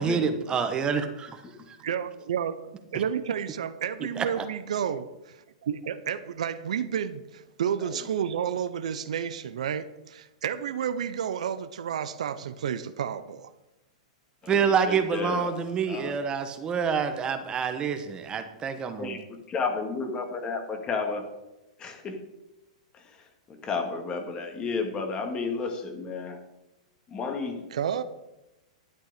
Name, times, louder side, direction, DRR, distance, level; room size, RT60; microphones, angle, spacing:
voice 1, 0.0-1.8 2.9-3.0 4.0-4.5 14.5-19.2, right 6 dB, 25° right, 8 dB, 1.3 m, -27 dB
voice 2, 1.8-2.6 2.9-13.5 27.7-28.0, right 8 dB, 75° right, 12 dB, 0.7 m, -31 dB
voice 3, 14.9-15.5 15.9-16.1 19.0-21.3 21.8-22.2 22.9-26.4 27.1-27.6, left 4 dB, 25° left, 5 dB, 2.0 m, -32 dB
11.5 x 9.3 x 5.1 m, 0.96 s
hypercardioid pair, 120°, 4 cm